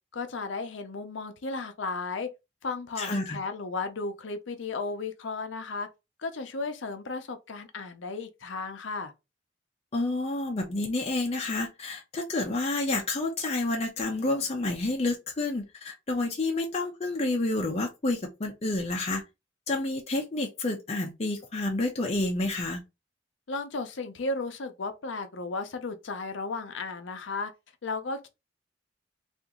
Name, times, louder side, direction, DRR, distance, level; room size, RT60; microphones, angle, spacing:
voice 1, 0.1-2.3 2.6-5.9 6.2-9.1 23.5-27.5 27.8-28.3, left 3 dB, 80° left, 0.6 m, -34 dB
voice 2, 3.0-3.4 9.9-19.2 19.7-22.8, left 2 dB, 35° left, 0.6 m, -29 dB
2.9 x 2.5 x 3.6 m
head